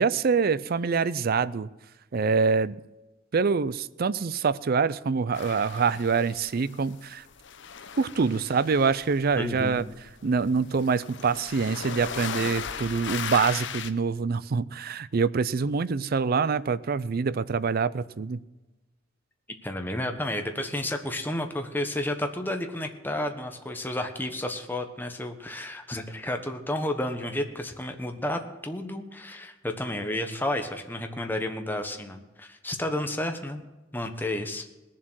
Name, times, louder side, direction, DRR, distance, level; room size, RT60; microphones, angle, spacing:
voice 1, 0.0-1.7 2.1-2.7 3.3-7.2 8.0-9.8 10.2-18.4, right 5 dB, 50° right, 17 dB, 0.5 m, -25 dB
sound 1, 5.3-7.0 7.2-13.9, left 7 dB, 65° left, 0.8 m, -37 dB
voice 2, 9.4-9.8 19.6-33.6 33.9-34.7, left 1 dB, 10° left, 5 dB, 1.2 m, -31 dB
19.5 x 7.4 x 6.3 m, 1.1 s
head